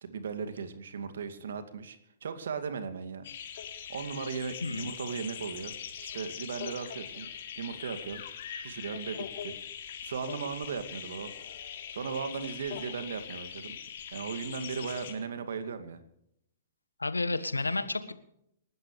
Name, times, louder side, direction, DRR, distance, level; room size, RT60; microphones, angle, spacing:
voice 1, 0.0-3.3 3.9-7.3 7.6-8.2 8.6-9.6 10.0-11.3 11.9-13.8 14.1-16.0 17.2-17.4, right 5 dB, 65° right, 9 dB, 2.3 m, -37 dB
sound 1, 3.2-15.1, left 8 dB, 55° left, 3.3 m, -42 dB
voice 2, 17.0-18.1, left 3 dB, 90° left, 11 dB, 1.5 m, -31 dB
28.5 x 13.5 x 3.3 m, 0.77 s
figure-of-eight pair, 115°, 0 cm